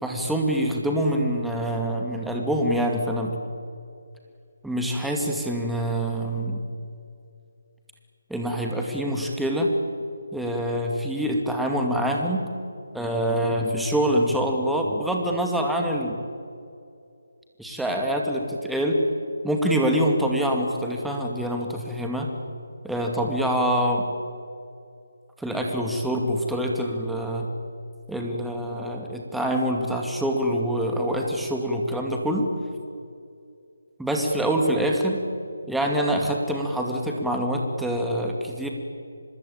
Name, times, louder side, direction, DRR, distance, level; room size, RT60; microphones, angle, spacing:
voice 1, 0.0-3.4 4.6-6.6 8.3-9.7 10.3-12.4 12.9-16.2 17.6-19.0 19.4-22.3 22.8-24.0 25.4-27.5 28.1-32.5 34.0-35.2 35.7-38.7, equal, ahead, 0 dB, 2.4 m, -25 dB
25.5 x 21.5 x 8.8 m, 2.5 s
figure-of-eight pair, 155°, 0 cm